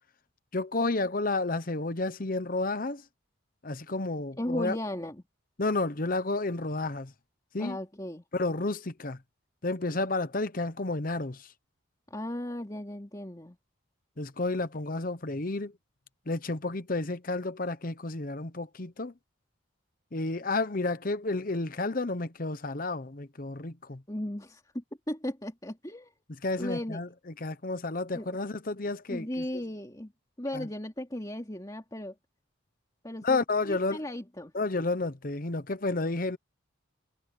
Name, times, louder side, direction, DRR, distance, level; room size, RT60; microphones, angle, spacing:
voice 1, 0.5-3.0 3.6-4.8 5.6-7.1 7.5-7.8 8.3-9.2 9.6-11.5 14.2-15.7 16.3-19.1 20.1-24.0 26.4-29.6 30.5-30.7 33.2-34.0 34.5-36.4, left 3 dB, 40° left, 0.9 m, -31 dB
voice 2, 4.4-5.2 7.6-8.2 12.1-13.6 24.1-26.1 26.6-27.0 28.1-28.4 29.1-30.1 30.4-32.1 33.0-33.4 33.7-34.5, left 1 dB, 20° left, 2.8 m, -36 dB
head